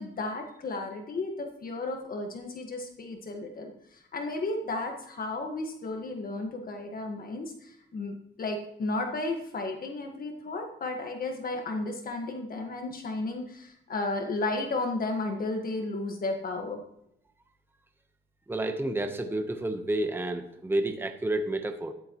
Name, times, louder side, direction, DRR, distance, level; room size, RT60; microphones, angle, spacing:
voice 1, 0.0-16.8, left 2 dB, 45° left, 3 dB, 1.6 m, -33 dB
voice 2, 18.5-21.9, right 1 dB, 10° right, 6 dB, 1.0 m, -30 dB
14.0 x 11.0 x 3.1 m, 0.77 s
cardioid pair, 90°, 20 cm